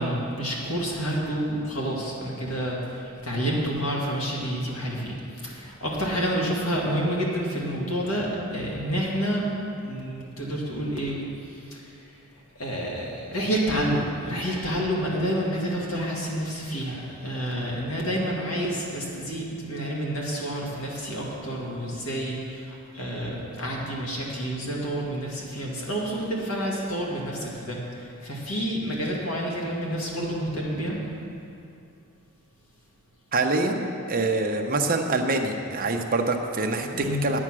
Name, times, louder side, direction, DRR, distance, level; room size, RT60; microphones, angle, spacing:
voice 1, 0.0-9.5 9.8-11.2 11.5-11.9 12.6-31.0 36.9-37.2, equal, 70° left, -3 dB, 2.2 m, -29 dB
voice 2, 33.3-37.4, right 2 dB, 40° right, 3 dB, 0.8 m, -25 dB
9.5 x 8.7 x 6.2 m, 2.6 s
head